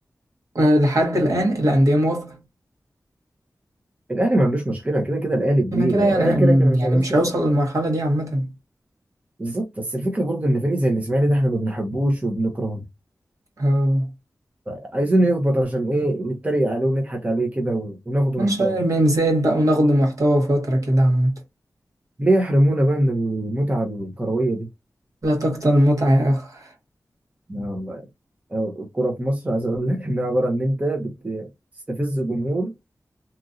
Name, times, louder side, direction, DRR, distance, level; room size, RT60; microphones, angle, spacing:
voice 1, 0.5-2.4 5.7-8.5 13.6-14.1 18.4-21.3 25.2-26.7, equal, 60° right, 1.5 m, -19 dB
voice 2, 4.1-7.2 9.4-12.8 14.7-18.8 22.2-24.7 27.5-28.0 28.5-31.5 31.9-32.7, right 1 dB, 20° right, 0.7 m, -22 dB
2.9 x 2.5 x 2.5 m
wide cardioid pair, 70°, 6 cm